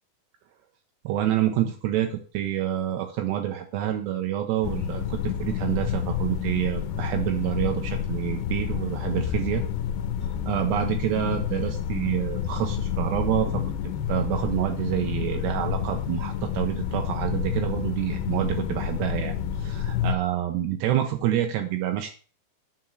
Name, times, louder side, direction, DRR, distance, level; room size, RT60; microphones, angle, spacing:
voice 1, 1.0-9.6 10.3-22.1, right 12 dB, 80° right, 4 dB, 2.9 m, -27 dB
sound 1, 4.6-20.2, left 9 dB, 80° left, 2.8 m, -29 dB
9.7 x 4.4 x 7.7 m, 0.40 s
omnidirectional pair, 5.2 m